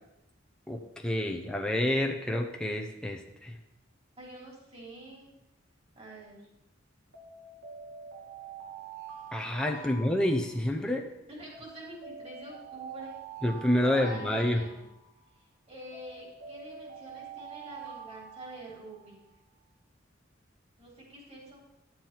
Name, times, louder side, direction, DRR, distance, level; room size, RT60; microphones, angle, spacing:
voice 1, 0.7-3.5 9.3-11.0 13.4-14.6, left 1 dB, 5° left, 1 dB, 0.7 m, -28 dB
voice 2, 4.2-5.3 5.9-6.4 9.7-9.9 11.3-13.2 13.8-14.8 15.7-19.2 20.8-21.6, right 1 dB, 35° right, -3 dB, 3.4 m, -46 dB
Alarm, 7.1-10.8 11.5-15.2 15.9-19.1, right 5 dB, 80° right, 2.1 m, -46 dB
11.5 x 7.4 x 4.6 m, 0.86 s
head